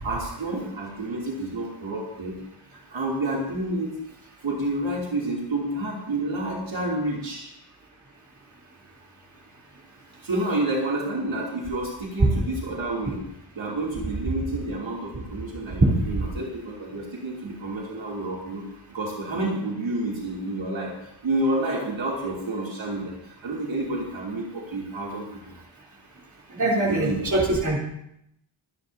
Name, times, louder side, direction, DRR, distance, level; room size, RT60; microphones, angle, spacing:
voice 1, 0.0-2.3 2.9-4.0 4.4-7.5 10.2-13.2 13.5-18.6 18.9-20.9 21.2-25.3 26.8-27.3, right 2 dB, 65° right, -4 dB, 3.0 m, -29 dB
voice 2, 26.6-27.8, right 2 dB, 35° right, -4 dB, 3.5 m, -23 dB
23.0 x 10.5 x 2.8 m, 0.78 s
wide cardioid pair, 160°, 49 cm